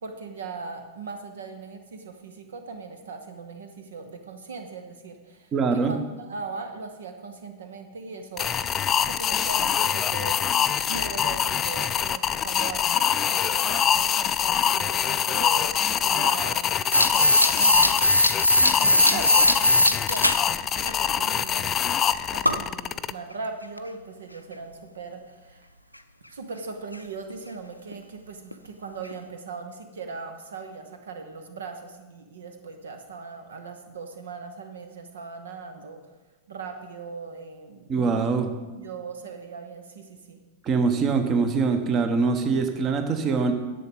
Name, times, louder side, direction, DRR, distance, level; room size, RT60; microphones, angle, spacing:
voice 1, 0.0-8.5 9.0-10.4 10.9-18.0 18.8-21.8 22.3-25.6 26.3-36.0 36.5-37.9 38.7-40.4, right 4 dB, 65° right, 6 dB, 0.9 m, -39 dB
voice 2, 5.5-5.9 37.9-38.5 40.6-43.5, right 4 dB, 30° right, 7 dB, 1.1 m, -23 dB
sound 1, 8.4-23.1, left 9 dB, 25° left, 0.4 m, -24 dB
sound 2, 16.9-20.4 20.8-20.9 22.4-22.6 23.8-23.9 26.9-27.0 27.3-27.4 27.9-28.0 28.5-28.6 29.1-29.2, left 1 dB, 90° left, 0.5 m, -20 dB
11.0 x 7.7 x 5.2 m, 1.2 s
figure-of-eight pair, 90°, 0 cm